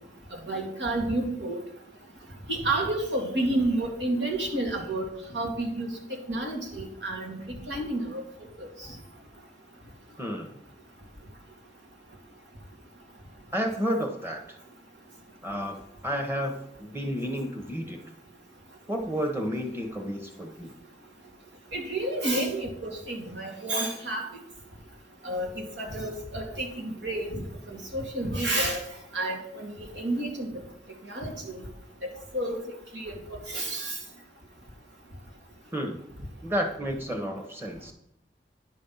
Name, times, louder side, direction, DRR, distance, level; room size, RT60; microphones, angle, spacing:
voice 1, 0.5-1.6 2.5-5.1 5.3-5.9 6.3-8.2 8.6-8.7 21.7-24.2 25.2-25.5 25.8-28.8 29.1-29.7 30.0-30.5 31.1-31.6 32.0-32.6 32.9-34.0, right 1 dB, 90° right, 1 dB, 2.1 m, -30 dB
voice 2, 10.2-10.6 13.5-14.6 15.4-18.0 18.9-20.7 35.7-36.0 36.4-37.9, equal, 15° right, 4 dB, 1.1 m, -31 dB
10.0 x 5.4 x 5.6 m, 0.78 s
head